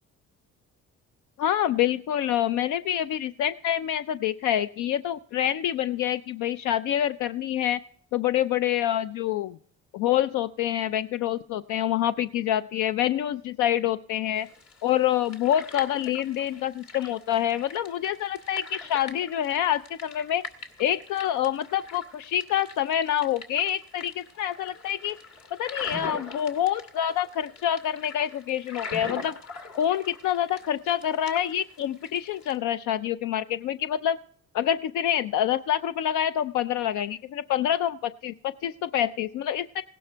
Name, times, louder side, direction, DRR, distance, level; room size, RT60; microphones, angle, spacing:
voice 1, 1.4-7.8 8.1-9.6 9.9-14.5 14.8-20.4 20.8-25.2 25.6-29.4 29.8-34.2 34.5-39.8, left 11 dB, 85° left, 12 dB, 0.5 m, -26 dB
sound 1, 14.4-32.6, left 3 dB, 65° left, 2.1 m, -43 dB
17.0 x 11.5 x 4.5 m, 0.62 s
cardioid pair, 90°, 30 cm